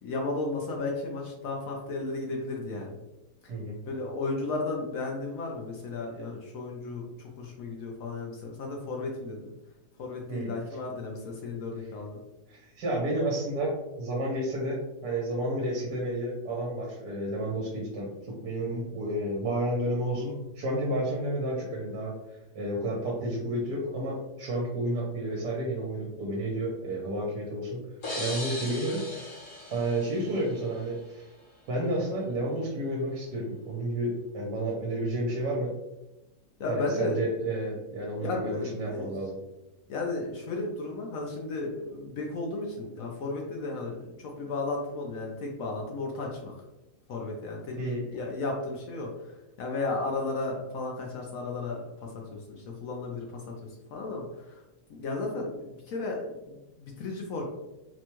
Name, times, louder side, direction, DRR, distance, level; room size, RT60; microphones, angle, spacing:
voice 1, 0.0-3.0 3.4-3.5 3.8-9.5 10.0-12.2 36.6-37.2 38.2-39.1 39.9-46.6 47.1-49.3 49.6-54.6 54.9-57.4, left 3 dB, 65° left, 0 dB, 0.9 m, -34 dB
voice 2, 12.5-13.7 14.0-27.8 28.2-29.4 29.7-31.3 31.7-35.8 36.7-39.4 47.8-48.0, right 1 dB, 75° right, -2 dB, 1.4 m, -31 dB
sound 1, 28.0-30.8, left 2 dB, 45° left, 0.7 m, -38 dB
4.2 x 2.2 x 2.9 m, 0.96 s
omnidirectional pair, 1.8 m